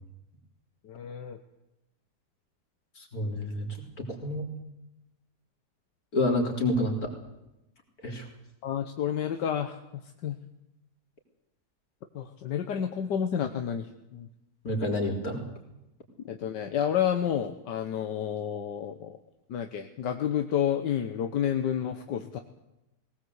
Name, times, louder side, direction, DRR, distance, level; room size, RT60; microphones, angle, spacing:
voice 1, 0.8-1.4 8.6-9.8 10.2-10.4 12.1-14.3 16.2-19.2 19.5-22.4, left 9 dB, 85° left, 7 dB, 1.7 m, -30 dB
voice 2, 3.0-3.7 4.2-4.4 6.1-7.1 8.0-8.2 14.6-15.4, left 1 dB, 60° left, 1 dB, 4.4 m, -28 dB
20.0 x 18.5 x 8.1 m, 0.91 s
omnidirectional pair, 1.8 m